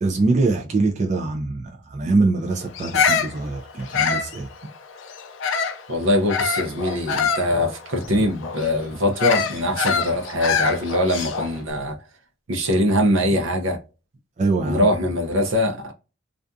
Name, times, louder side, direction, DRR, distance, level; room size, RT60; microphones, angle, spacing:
voice 1, 0.0-4.5 14.4-14.9, right 3 dB, 35° right, 0.3 m, -23 dB
Bird vocalization bird call bird song, 2.7-5.9 6.3-11.6, left 6 dB, 70° left, 0.4 m, -25 dB
voice 2, 5.9-12.0 12.5-13.8 14.6-15.9, left 1 dB, 75° right, 0.6 m, -22 dB
2.5 x 2.3 x 2.5 m
head